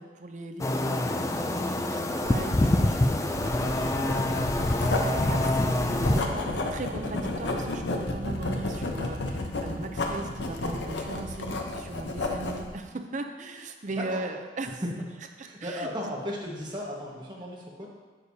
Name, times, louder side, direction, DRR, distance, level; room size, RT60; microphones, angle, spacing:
voice 1, 0.0-6.2 6.7-14.8 15.4-15.9, right 2 dB, 40° right, 5 dB, 0.5 m, -39 dB
sound 1, 0.6-6.2, left 1 dB, 15° left, 0.3 m, -26 dB
Writing, 3.3-12.7, left 2 dB, 75° left, 0.8 m, -31 dB
voice 2, 6.0-6.6 14.0-14.1 14.8-14.9 15.4-17.9, equal, 25° right, -4 dB, 1.4 m, -35 dB
9.4 x 6.6 x 2.8 m, 1.3 s
head